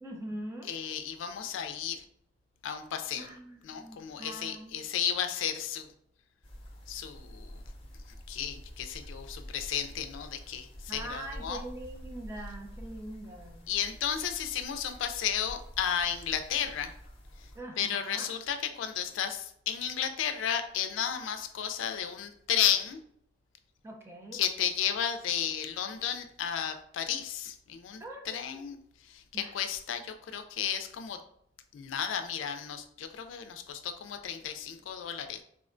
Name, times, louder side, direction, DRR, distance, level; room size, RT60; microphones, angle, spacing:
voice 1, 0.0-0.8 3.1-4.8 10.9-13.7 17.5-18.4 23.8-24.4 28.0-28.7 29.3-29.6, right 1 dB, 15° right, 2 dB, 0.4 m, -43 dB
voice 2, 0.7-2.0 2.6-3.3 3.6-5.9 6.9-7.6 8.3-10.7 10.9-11.6 13.7-16.9 17.8-23.0 24.3-28.0 28.3-28.8 29.1-29.2 29.5-31.2 31.7-35.4, left 9 dB, 80° left, 8 dB, 0.3 m, -33 dB
sound 1, 6.4-17.6, equal, 30° left, 0.6 m, -47 dB
3.5 x 2.1 x 2.5 m, 0.69 s
head